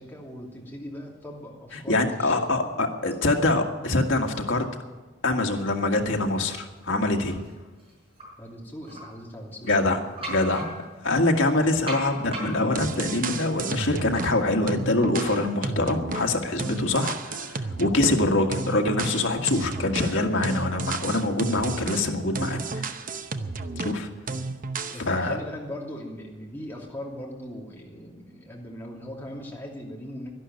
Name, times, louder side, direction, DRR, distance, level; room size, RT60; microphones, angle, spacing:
voice 1, 0.0-3.5 8.4-9.7 23.7-24.0 24.9-30.3, equal, 10° left, -2 dB, 2.9 m, -40 dB
voice 2, 1.9-4.6 5.2-7.4 9.6-10.0 10.3-10.7 11.0-23.0 23.8-24.1 25.1-25.4, left 2 dB, 85° left, 2 dB, 1.8 m, -24 dB
sound 1, 7.3-8.2 8.8-9.0 9.5-11.1 11.9-15.7 16.1-17.2, right 1 dB, 30° right, 6.2 m, -40 dB
sound 2, 12.7-14.4 14.7-18.2 18.5-24.0 24.3-25.0, right 3 dB, 45° right, 0.8 m, -32 dB
11.5 x 11.5 x 9.4 m, 1.3 s
head